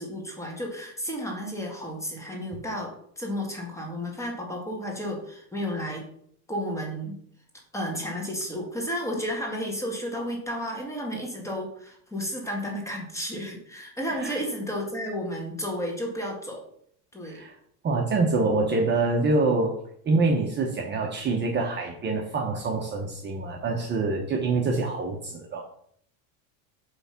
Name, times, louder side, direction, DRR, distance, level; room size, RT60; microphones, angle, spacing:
voice 1, 0.0-6.1 6.5-7.2 7.7-16.6 17.1-17.4, equal, 5° left, 0 dB, 1.8 m, -32 dB
voice 2, 17.8-19.8 20.0-25.6, right 3 dB, 25° right, 0 dB, 1.0 m, -25 dB
8.1 x 3.4 x 5.8 m, 0.65 s
supercardioid pair, 145°, 42 cm